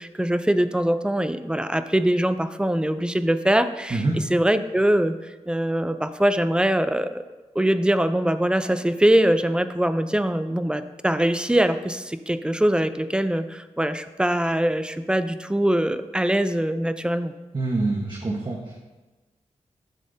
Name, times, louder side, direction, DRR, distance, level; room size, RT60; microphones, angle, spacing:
voice 1, 0.0-4.0 4.3-5.2 5.5-7.2 7.5-17.3, right 1 dB, 5° right, 11 dB, 0.5 m, -22 dB
voice 2, 17.5-18.8, right 2 dB, 40° right, -1 dB, 1.3 m, -25 dB
12.5 x 7.3 x 2.8 m, 1.2 s
cardioid pair, 60°, 12 cm